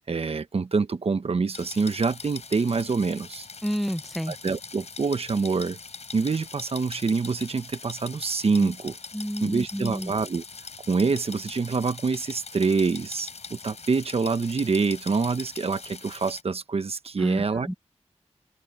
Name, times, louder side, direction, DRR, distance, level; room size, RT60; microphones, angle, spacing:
voice 1, 0.1-3.5 4.3-5.8 6.1-8.9 9.4-17.7, right 4 dB, 60° right, 1.1 m, -26 dB
sound 1, 1.5-16.4, left 5 dB, 70° left, 5.1 m, -42 dB
voice 2, 3.6-4.6 8.6-8.7 9.1-10.1 17.2-17.7, equal, ahead, 1.2 m, -31 dB
open air
wide cardioid pair, 100°, 12 cm